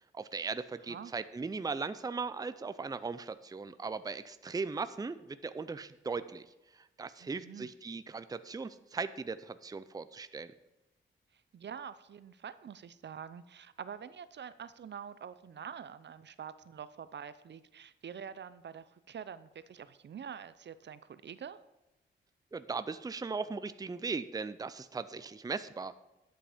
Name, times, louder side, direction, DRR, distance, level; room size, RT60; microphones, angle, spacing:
voice 1, 0.1-6.5 7.0-10.5 22.5-25.9, right 4 dB, 20° right, 12 dB, 0.5 m, -38 dB
voice 2, 7.2-7.7 11.3-21.6, right 8 dB, 60° right, 14 dB, 0.6 m, -46 dB
11.5 x 7.8 x 5.0 m, 0.98 s
cardioid pair, 90°, 20 cm